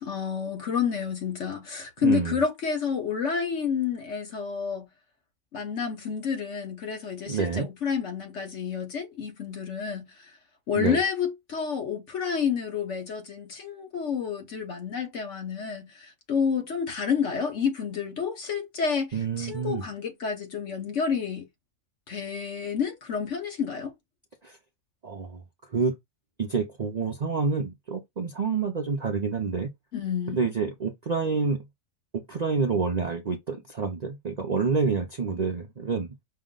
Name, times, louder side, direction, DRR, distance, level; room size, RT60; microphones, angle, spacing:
voice 1, 0.0-4.9 5.5-10.3 10.7-21.5 22.1-23.9 29.9-30.4, left 6 dB, 60° left, 1.4 m, -29 dB
voice 2, 2.0-2.4 7.3-7.7 10.7-11.0 19.1-19.8 24.4-24.6 25.0-25.4 25.7-25.9 26.4-29.7 30.3-31.6 32.1-36.1, right 5 dB, 45° right, 0.5 m, -28 dB
5.6 x 2.1 x 3.7 m
omnidirectional pair, 1.4 m